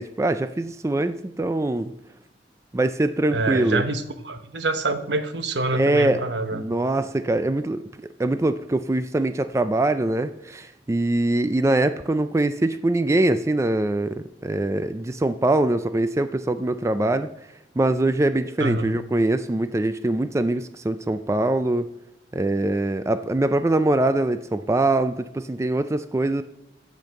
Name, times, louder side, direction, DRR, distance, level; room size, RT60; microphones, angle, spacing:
voice 1, 0.0-1.9 2.7-3.8 5.7-6.2 6.5-7.9 8.2-17.3 17.8-21.9 22.3-26.4, right 2 dB, 15° right, 11 dB, 0.4 m, -23 dB
voice 2, 3.3-6.7 18.6-18.9, right 2 dB, 80° right, 9 dB, 1.0 m, -26 dB
13.5 x 5.2 x 7.5 m, 0.85 s
head